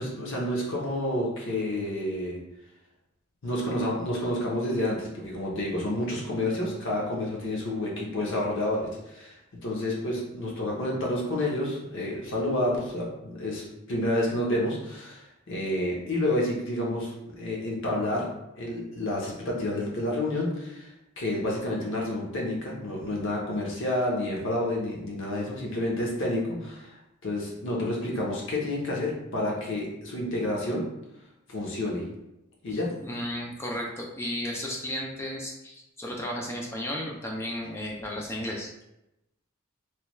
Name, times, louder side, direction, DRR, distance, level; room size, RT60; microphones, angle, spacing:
voice 1, 0.0-2.4 3.4-9.3 9.6-18.3 18.5-20.9 21.2-27.0 27.2-30.9 31.5-32.0 32.6-32.9, left 1 dB, 60° left, -3 dB, 0.8 m, -29 dB
voice 2, 32.7-38.7, left 1 dB, 10° left, -1 dB, 0.4 m, -34 dB
3.2 x 2.3 x 3.1 m, 0.89 s
head